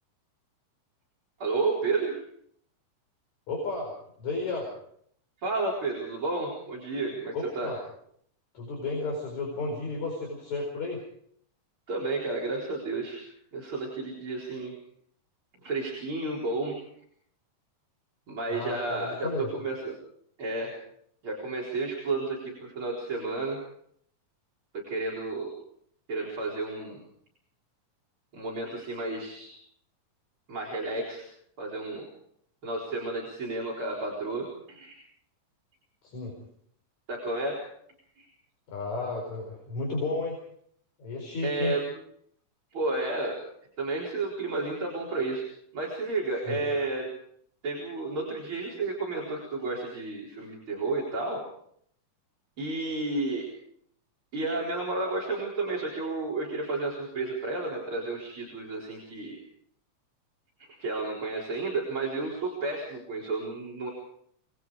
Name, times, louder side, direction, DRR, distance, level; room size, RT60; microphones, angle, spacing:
voice 1, 1.4-2.2 5.4-7.7 11.9-13.2 13.5-14.7 15.6-16.8 18.3-19.9 20.4-20.7 21.2-23.6 24.7-25.5 26.1-27.0 28.3-29.6 30.5-31.2 31.6-32.0 32.6-34.9 37.1-37.6 38.2-38.3 41.4-41.8 42.7-43.4 43.8-45.4 45.7-47.1 47.6-51.4 52.6-53.5 54.3-59.4 60.7-63.9, right 3 dB, 40° right, -3 dB, 5.1 m, -31 dB
voice 2, 3.5-3.9 4.2-4.7 7.3-7.8 8.5-11.0 18.5-19.5 36.0-36.3 38.7-40.4 41.0-41.7 46.4-46.6, left 3 dB, 60° left, 0 dB, 5.9 m, -33 dB
27.5 x 21.0 x 5.0 m, 0.67 s
omnidirectional pair, 3.7 m